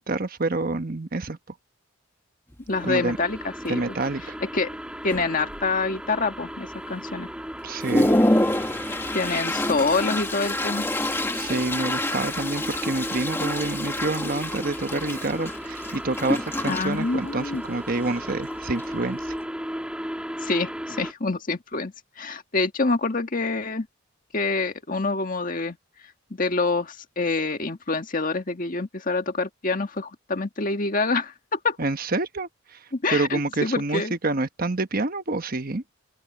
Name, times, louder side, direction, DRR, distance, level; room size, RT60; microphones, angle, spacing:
voice 1, 0.0-1.4 2.8-3.2 3.7-4.3 7.6-8.1 11.3-19.2 31.8-32.5 33.1-35.8, right 2 dB, 45° right, 1.2 m, -27 dB
Toilet flush, 2.5-2.6 3.1-3.4 3.7-4.2 4.7-4.8 5.1-5.9 6.3-6.4 7.0-7.1 7.5-19.4, left 1 dB, 10° left, 1.7 m, -28 dB
voice 2, 2.7-3.8 4.4-4.7 5.0-7.3 9.1-10.9 16.6-17.6 20.4-23.9 24.3-25.8 26.3-31.8 32.9-34.1, left 3 dB, 40° left, 1.7 m, -26 dB
sound 1, 2.7-21.1, equal, 5° right, 2.0 m, -36 dB
open air
head